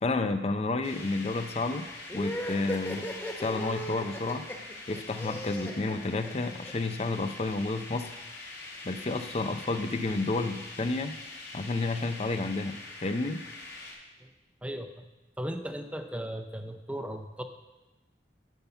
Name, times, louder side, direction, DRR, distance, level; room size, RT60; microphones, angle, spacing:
voice 1, 0.0-1.9 2.1-3.1 3.4-4.4 4.9-8.2 8.8-11.2 11.5-13.4, left 3 dB, 35° left, 8 dB, 0.5 m, -30 dB
sound 1, 0.8-13.9, left 2 dB, 85° left, 3.5 m, -44 dB
sound 2, 2.1-6.7, equal, 15° left, 1.3 m, -37 dB
voice 2, 14.6-15.1 15.4-17.4, equal, 5° right, 6 dB, 0.6 m, -37 dB
10.5 x 5.8 x 6.8 m, 1.0 s
head